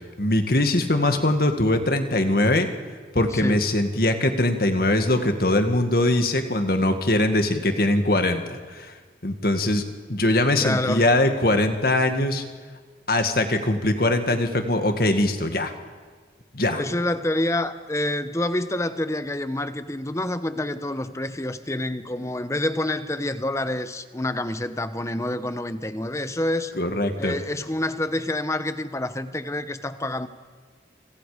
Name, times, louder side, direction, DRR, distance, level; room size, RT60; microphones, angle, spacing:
voice 1, 0.2-2.7 3.1-8.9 9.2-9.8 10.1-12.4 13.1-15.7 16.5-16.8 26.8-27.4, left 1 dB, 55° left, 6 dB, 2.0 m, -22 dB
voice 2, 3.3-3.7 10.6-11.1 16.7-26.7 27.2-30.3, left 1 dB, 15° left, 11 dB, 0.9 m, -27 dB
28.5 x 26.0 x 5.1 m, 1.5 s
head